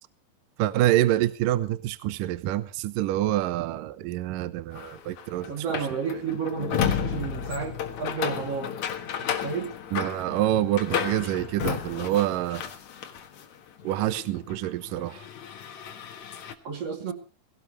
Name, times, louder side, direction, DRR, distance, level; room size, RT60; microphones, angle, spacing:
voice 1, 0.6-5.5 6.1-6.2 9.9-12.6 13.8-15.2, right 13 dB, 80° right, 1.9 m, -26 dB
sound 1, 4.7-13.5 13.8-16.5, left 8 dB, 60° left, 2.1 m, -33 dB
voice 2, 5.5-8.8 9.2-9.7 11.2-11.3 16.6-17.1, right 5 dB, 40° right, 3.2 m, -32 dB
20.0 x 17.0 x 3.2 m
omnidirectional pair, 5.2 m